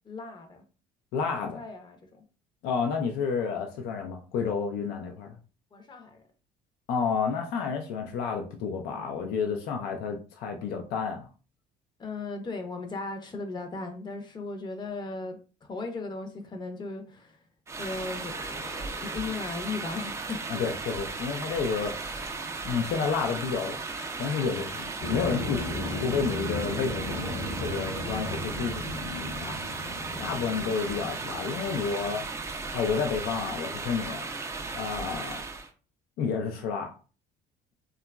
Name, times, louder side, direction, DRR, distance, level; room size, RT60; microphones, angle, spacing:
voice 1, 0.0-0.6 1.3-2.2 5.7-6.2 12.0-17.4 17.8-20.6 30.1-30.4 35.0-35.2, left 3 dB, 25° left, 0.6 m, -37 dB
voice 2, 1.1-1.6 2.6-5.4 6.9-11.3 20.5-22.3 22.6-23.8 24.2-27.3 27.6-29.6 30.2-34.3 34.7-35.4 36.2-36.9, left 5 dB, 75° left, 0.5 m, -30 dB
sound 1, 17.7-35.7, right 3 dB, 20° right, 0.4 m, -36 dB
sound 2, 25.0-32.7, left 1 dB, 50° left, 0.8 m, -36 dB
2.9 x 2.3 x 2.2 m
cardioid pair, 110°, 16 cm